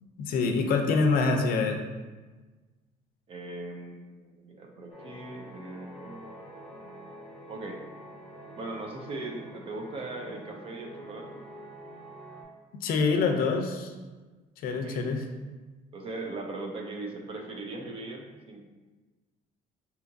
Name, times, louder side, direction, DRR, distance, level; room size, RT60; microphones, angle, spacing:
voice 1, 0.2-1.8 12.8-13.9 14.6-15.2, left 4 dB, 65° left, 4 dB, 0.5 m, -25 dB
voice 2, 3.3-6.4 7.5-7.8 8.5-11.4 14.7-15.0 15.9-18.6, right 2 dB, 35° right, 2 dB, 0.5 m, -39 dB
sound 1, 4.9-12.4, right 1 dB, ahead, 1.2 m, -46 dB
5.7 x 2.8 x 2.6 m, 1.3 s
cardioid pair, 175°, 16 cm